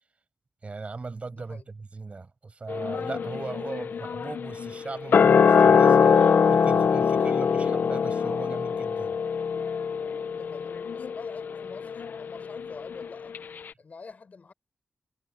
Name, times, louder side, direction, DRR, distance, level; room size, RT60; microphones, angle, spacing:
voice 1, 0.6-9.2, right 4 dB, 40° right, 6.3 m, -38 dB
voice 2, 1.3-1.7 10.3-13.4 13.8-14.5, left 4 dB, 50° left, 7.1 m, -46 dB
sound 1, 2.7-13.1 13.3-13.4, left 6 dB, 75° left, 0.6 m, -23 dB
wide cardioid pair, 115°, 3 cm